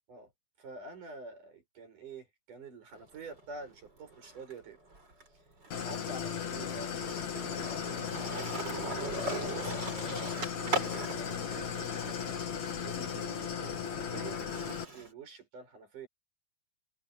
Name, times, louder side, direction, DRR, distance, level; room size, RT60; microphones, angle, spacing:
voice 1, 0.6-4.8 5.8-8.8 9.1-10.1 10.6-12.2 12.8-16.1, right 4 dB, 80° right, 8.8 m, -48 dB
Skateboard, 2.9-4.5 4.9-15.1, right 2 dB, 30° right, 5.8 m, -40 dB
Idling, 5.7-14.8, left 7 dB, 60° left, 3.6 m, -36 dB
omnidirectional pair, 3.6 m